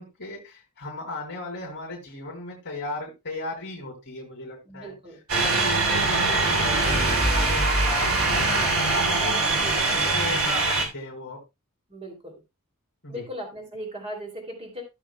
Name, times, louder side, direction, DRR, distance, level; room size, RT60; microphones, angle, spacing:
voice 1, 0.0-4.9 5.4-9.3 9.7-11.4 13.0-13.2, left 2 dB, 55° left, -2 dB, 2.8 m, -36 dB
voice 2, 4.6-5.2 9.5-10.0 11.9-12.4 13.1-14.8, equal, 30° right, 1 dB, 2.8 m, -38 dB
sound 1, 5.3-10.9, right 3 dB, 70° right, 2.8 m, -22 dB
15.0 x 7.1 x 2.2 m, 0.24 s
head